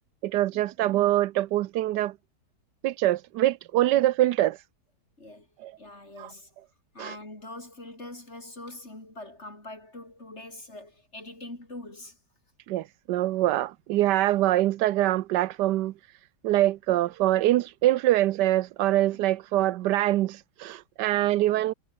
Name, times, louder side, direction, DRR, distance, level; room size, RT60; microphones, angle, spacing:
voice 1, 0.2-2.1 2.8-4.6 5.6-5.7 6.2-6.3 7.0-7.1 12.7-15.9 16.4-21.7, right 14 dB, 85° right, 1.2 m, -24 dB
voice 2, 5.8-6.5 6.9-12.2 21.1-21.3, left 2 dB, 40° left, 5.9 m, -43 dB
omnidirectional pair, 1.8 m